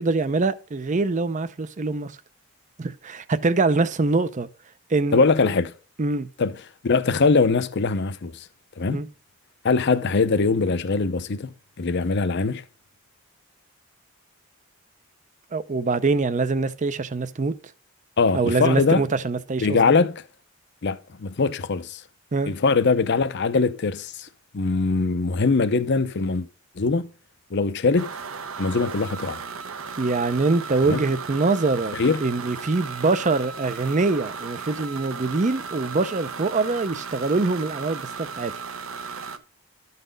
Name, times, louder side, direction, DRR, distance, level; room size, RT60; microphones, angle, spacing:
voice 1, 0.0-2.2 2.8-4.5 4.9-5.2 6.0-6.3 8.9-9.1 15.5-17.5 18.3-19.9 22.3-22.5 30.0-38.5, right 3 dB, 35° right, 0.5 m, -24 dB
voice 2, 5.1-5.7 6.4-6.6 6.8-8.5 8.8-9.0 9.6-11.5 11.8-12.6 18.2-19.0 19.6-20.2 20.8-22.0 22.5-24.3 24.5-26.5 26.8-27.1 27.5-28.1 28.6-29.4 30.9-31.0 31.9-32.2, left 4 dB, 55° left, 0.6 m, -22 dB
sound 1, 28.0-39.4, right 5 dB, 70° right, 0.8 m, -36 dB
12.0 x 4.1 x 5.1 m
head